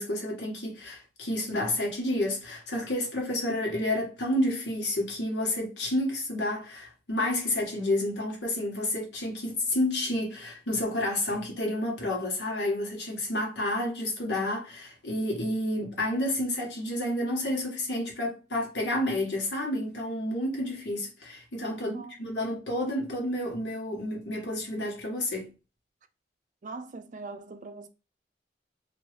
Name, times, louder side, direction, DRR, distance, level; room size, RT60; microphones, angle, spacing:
voice 1, 0.0-25.5, left 1 dB, 85° left, 1.3 m, -30 dB
voice 2, 21.8-22.1 26.6-27.9, right 3 dB, 45° right, 0.4 m, -41 dB
3.0 x 2.6 x 3.1 m
head